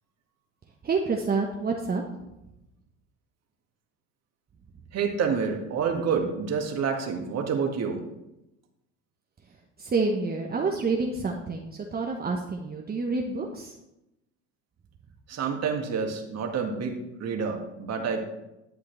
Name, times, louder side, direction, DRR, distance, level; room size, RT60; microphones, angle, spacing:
voice 1, 0.8-2.0 9.8-13.7, right 4 dB, 25° right, 1 dB, 1.1 m, -28 dB
voice 2, 4.9-8.0 15.3-18.2, right 6 dB, 40° right, 3 dB, 1.9 m, -28 dB
11.0 x 8.3 x 3.4 m, 0.90 s
hypercardioid pair, 80°, 38 cm